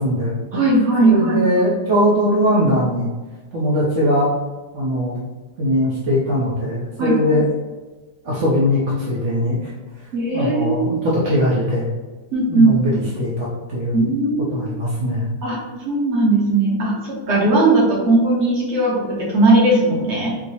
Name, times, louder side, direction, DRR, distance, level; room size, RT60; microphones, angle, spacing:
voice 1, 0.0-0.6 1.0-3.1 3.5-4.3 4.7-5.2 5.6-7.5 8.2-9.7 10.3-11.9 12.5-14.1 14.5-15.3, left 1 dB, 60° right, -6 dB, 0.8 m, -20 dB
voice 2, 0.5-1.4 7.0-7.2 10.1-11.1 12.3-12.7 13.9-14.5 15.4-15.6 15.8-20.3, right 2 dB, 45° right, -4 dB, 1.0 m, -18 dB
4.6 x 2.0 x 2.8 m, 1.3 s
omnidirectional pair, 1.9 m